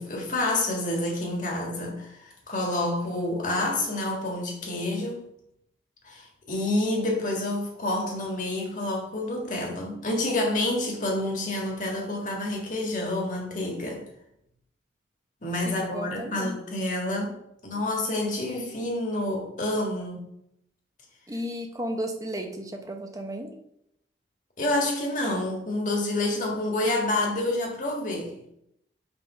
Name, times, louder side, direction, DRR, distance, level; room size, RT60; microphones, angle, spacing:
voice 1, 0.0-5.2 6.0-14.0 15.4-17.3 17.6-20.2 24.6-28.4, left 1 dB, 45° left, 0 dB, 1.6 m, -28 dB
voice 2, 15.6-16.6 21.3-23.5, equal, 20° right, 3 dB, 0.8 m, -34 dB
5.8 x 3.6 x 5.3 m, 0.76 s
head